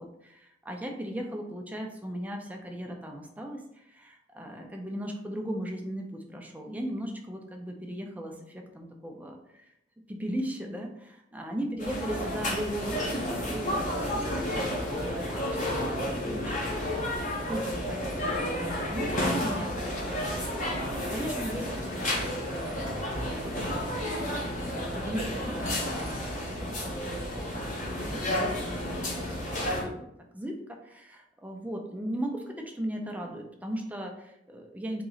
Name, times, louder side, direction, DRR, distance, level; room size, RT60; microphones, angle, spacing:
voice 1, 0.0-9.7 10.1-15.8 16.0-20.4 20.8-22.8 23.2-23.8 24.6-30.1 30.3-35.0, equal, 10° right, 1 dB, 0.5 m, -38 dB
sound 1, 11.8-29.8, left 1 dB, 40° left, 1.1 m, -31 dB
3.9 x 2.9 x 3.8 m, 0.79 s
head